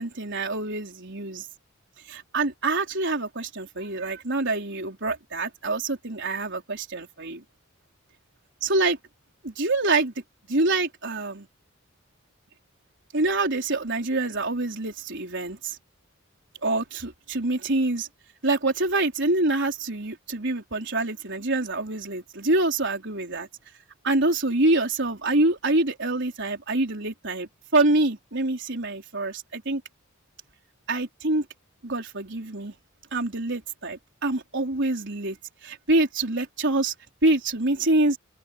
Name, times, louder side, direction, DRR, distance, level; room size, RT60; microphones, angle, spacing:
voice 1, 0.0-1.5 2.1-7.4 8.6-9.0 9.4-10.1 10.5-11.5 13.1-15.8 16.6-18.1 18.4-23.5 24.0-29.8 30.9-31.5 31.8-32.7 33.1-35.4 35.6-36.9 37.2-38.2, right 2 dB, 60° right, 4.5 m, -26 dB
open air
head